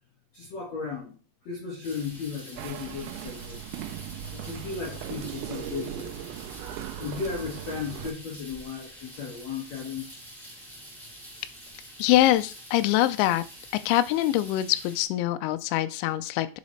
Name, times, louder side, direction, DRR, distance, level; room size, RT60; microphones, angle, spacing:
voice 1, 0.3-1.1 1.5-3.6 4.3-6.2 7.0-10.1, left 5 dB, 65° left, -4 dB, 1.7 m, -35 dB
sound 1, 1.8-15.0, equal, ahead, 1.2 m, -47 dB
sound 2, 2.6-8.1, right 11 dB, 85° right, 2.6 m, -38 dB
voice 2, 12.0-13.4 13.9-16.5, left 14 dB, 85° left, 12 dB, 2.7 m, -24 dB
9.5 x 5.0 x 3.1 m, 0.35 s
omnidirectional pair, 5.6 m